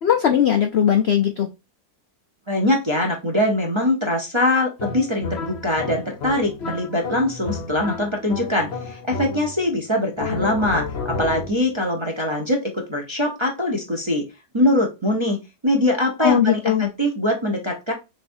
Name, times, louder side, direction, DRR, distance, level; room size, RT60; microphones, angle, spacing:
voice 1, 0.0-1.5 16.2-16.9, left 9 dB, 80° left, 5 dB, 0.5 m, -19 dB
voice 2, 2.5-14.3 14.5-15.4 15.6-17.9, left 1 dB, 25° right, 0 dB, 0.6 m, -22 dB
sound 1, 4.8-9.8 10.2-11.7, left 4 dB, 50° left, 0.8 m, -31 dB
6.3 x 2.7 x 2.6 m, 0.25 s
omnidirectional pair, 1.9 m